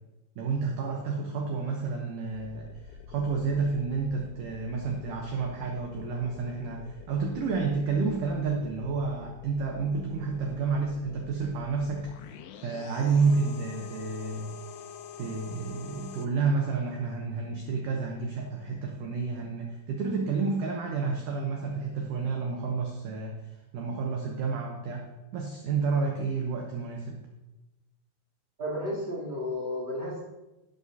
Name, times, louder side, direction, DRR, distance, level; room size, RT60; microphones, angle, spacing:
voice 1, 0.4-12.4 12.6-14.5 15.2-23.4 23.7-25.0 25.3-27.2, right 4 dB, 70° right, 1 dB, 2.0 m, -30 dB
sound 1, 2.3-16.3, left 8 dB, 85° left, 2.2 m, -47 dB
voice 2, 28.6-30.2, left 1 dB, 15° right, -7 dB, 2.4 m, -32 dB
11.5 x 9.1 x 2.8 m, 1.0 s
omnidirectional pair, 4.7 m